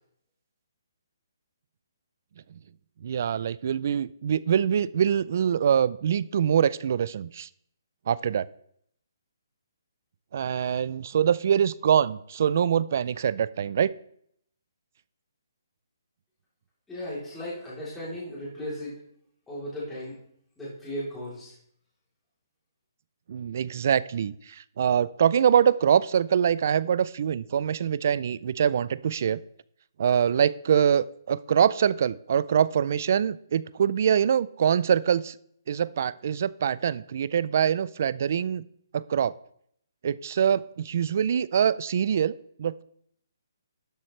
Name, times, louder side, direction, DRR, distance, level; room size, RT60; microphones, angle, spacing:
voice 1, 3.0-7.5 8.1-8.4 10.3-13.9 23.3-29.4 30.0-35.3 35.7-38.7 38.9-39.3 40.0-42.8, right 8 dB, 40° right, 19 dB, 0.3 m, -24 dB
voice 2, 16.9-19.0 19.5-20.2 20.6-21.5, left 1 dB, 5° left, -10 dB, 3.3 m, -36 dB
12.0 x 7.5 x 3.2 m, 0.68 s
hypercardioid pair, 170°, 2 cm